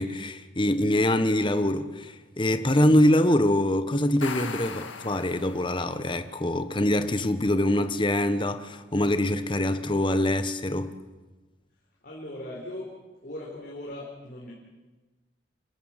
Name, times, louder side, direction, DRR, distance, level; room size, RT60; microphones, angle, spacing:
voice 1, 0.0-10.9, left 1 dB, 25° left, 1.3 m, -24 dB
sound 1, 4.0-6.0, left 5 dB, 80° left, 2.1 m, -38 dB
voice 2, 12.0-13.0 13.2-14.5, left 1 dB, 50° left, 4.3 m, -39 dB
27.5 x 14.0 x 9.2 m
head